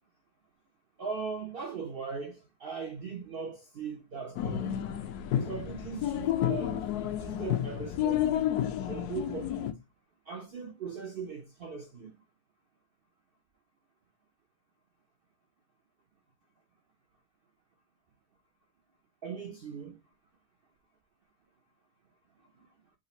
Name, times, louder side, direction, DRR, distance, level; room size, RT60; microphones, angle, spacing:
voice 1, 1.0-4.8 5.3-6.9 7.2-8.5 8.9-9.8 10.3-12.1 19.2-20.0, right 5 dB, 80° right, 0.5 m, -39 dB
sound 1, 4.4-9.7, left 11 dB, 75° left, 1.0 m, -31 dB
3.8 x 2.4 x 3.9 m
omnidirectional pair, 1.8 m